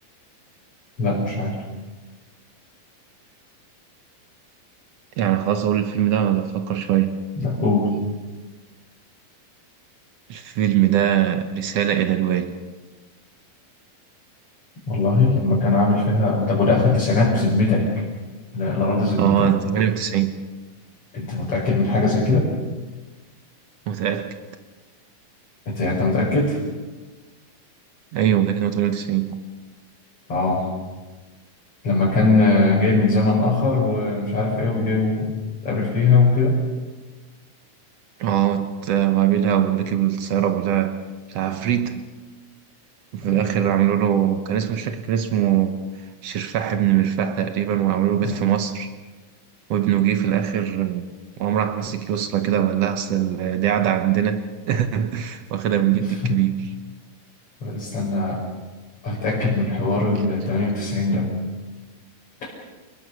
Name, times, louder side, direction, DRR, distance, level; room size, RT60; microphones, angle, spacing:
voice 1, 1.0-1.6 7.4-7.9 14.9-18.0 18.5-19.5 21.1-22.5 25.7-26.6 30.3-30.7 31.8-35.4 35.6-36.6 43.3-43.5 48.2-48.5 56.2-56.3 57.6-58.4 59.0-61.3 62.4-62.5, left 3 dB, 35° left, 5.8 m, -20 dB
voice 2, 5.2-7.2 10.3-12.6 19.2-20.4 23.9-24.4 28.1-29.4 38.2-41.0 41.3-42.1 43.1-45.8 46.2-48.9 49.7-51.1 51.4-56.7, right 10 dB, 85° right, 1.4 m, -22 dB
29.5 x 21.5 x 6.0 m
omnidirectional pair, 4.4 m